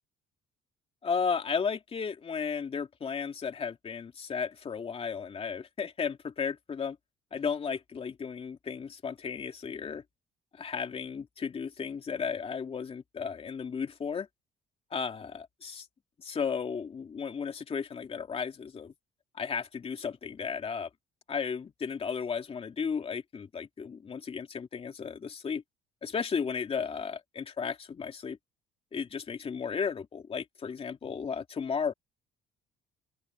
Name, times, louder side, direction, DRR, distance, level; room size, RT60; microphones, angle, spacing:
voice 1, 1.0-7.0 7.3-10.0 10.5-14.3 14.9-15.9 16.2-18.9 19.3-20.9 21.3-25.6 26.0-28.4 28.9-31.9, left 6 dB, 35° left, 2.5 m, -34 dB
open air
cardioid pair, 110°, 17 cm